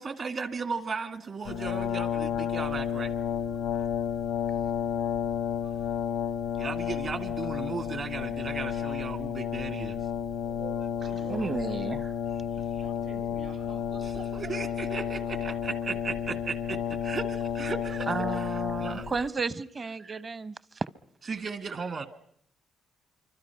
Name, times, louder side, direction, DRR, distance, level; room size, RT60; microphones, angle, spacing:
voice 1, 0.0-3.1 6.6-10.0 14.3-18.5 18.8-19.1 21.3-22.1, right 5 dB, 50° right, 1.6 m, -36 dB
Brass instrument, 1.4-19.2, left 8 dB, 90° left, 0.9 m, -31 dB
voice 2, 2.8-3.7 5.6-5.9 11.0-11.9 12.5-14.6, right 4 dB, 80° right, 7.7 m, -51 dB
voice 3, 5.6-6.1 6.6-7.0 10.3-11.5, right 5 dB, 65° right, 6.9 m, -47 dB
voice 4, 11.3-12.1 18.1-20.8, right 4 dB, 35° right, 0.9 m, -33 dB
26.5 x 24.5 x 5.7 m
cardioid pair, 90°, 0 cm